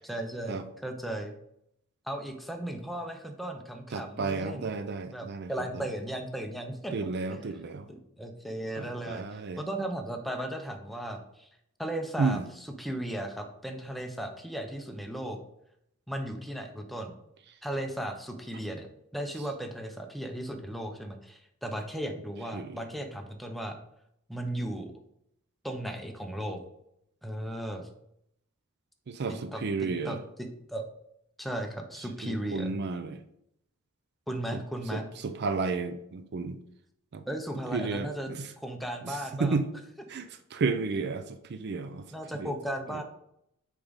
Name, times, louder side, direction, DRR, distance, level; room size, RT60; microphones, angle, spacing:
voice 1, 0.0-1.3 2.1-4.7 5.1-6.9 7.3-7.5 7.9-11.5 11.8-15.4 16.1-17.1 17.6-18.9 19.1-23.8 24.3-24.9 25.6-26.6 27.2-27.9 29.5-30.9 31.4-32.8 34.3-35.1 37.3-38.3 38.6-39.6 42.1-43.0, right 1 dB, ahead, 4 dB, 0.7 m, -36 dB
voice 2, 3.9-5.8 6.9-7.9 8.8-9.6 12.2-12.5 22.5-22.8 29.1-30.2 32.2-33.2 34.5-34.6 34.9-36.6 37.1-37.2 37.7-38.5 39.0-39.7 40.1-42.0 42.4-42.5 42.9-43.0, right 4 dB, 55° right, 9 dB, 0.5 m, -32 dB
6.6 x 4.7 x 4.0 m, 0.76 s
head